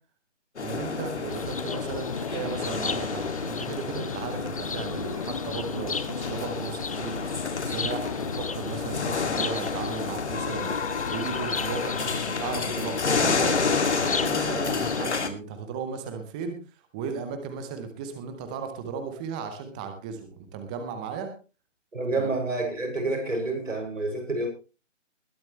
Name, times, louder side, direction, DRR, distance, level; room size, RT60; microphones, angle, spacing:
sound 1, 0.6-15.3, left 4 dB, 60° left, 2.5 m, -30 dB
voice 1, 0.6-21.3 22.2-22.3, right 6 dB, 5° right, 7 dB, 0.7 m, -36 dB
sound 2, 1.3-15.0, left 5 dB, 30° left, 0.5 m, -35 dB
voice 2, 21.9-24.5, right 2 dB, 80° right, 2 dB, 6.8 m, -28 dB
21.0 x 10.5 x 3.2 m, 0.33 s
figure-of-eight pair, 150°, 37 cm